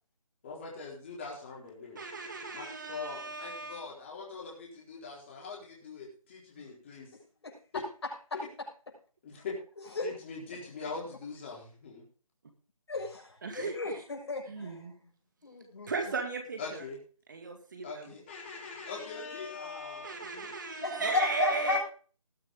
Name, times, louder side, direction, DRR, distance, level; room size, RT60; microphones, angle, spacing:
voice 1, 0.4-2.0 2.5-7.1 8.3-8.5 9.2-9.5 10.0-12.1 16.6-17.0 17.8-20.5 21.0-21.1, left 4 dB, 20° left, -3 dB, 4.1 m, -42 dB
voice 2, 2.0-3.8 13.4-13.8 14.5-14.9 15.9-16.8 17.3-18.1 20.0-21.8, right 4 dB, 35° right, 5 dB, 2.1 m, -35 dB
voice 3, 7.1-7.6 8.0-8.4 9.9-10.1 12.9-14.9 15.4-15.9 20.8-21.8, left 3 dB, 45° left, 0 dB, 6.6 m, -34 dB
20.0 x 7.4 x 3.6 m, 0.39 s
figure-of-eight pair, 170°, 18 cm